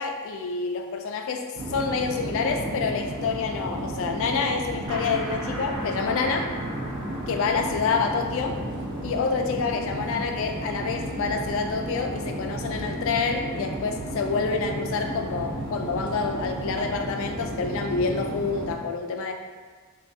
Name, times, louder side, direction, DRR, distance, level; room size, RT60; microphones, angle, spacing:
voice 1, 0.0-6.5 7.3-8.6 9.0-19.3, left 5 dB, 65° left, 4 dB, 0.3 m, -27 dB
sound 1, 1.6-18.7, right 1 dB, 45° right, 0.4 m, -33 dB
sound 2, 4.9-10.3, equal, 80° right, 1.5 m, -40 dB
3.3 x 2.3 x 2.6 m, 1.5 s
head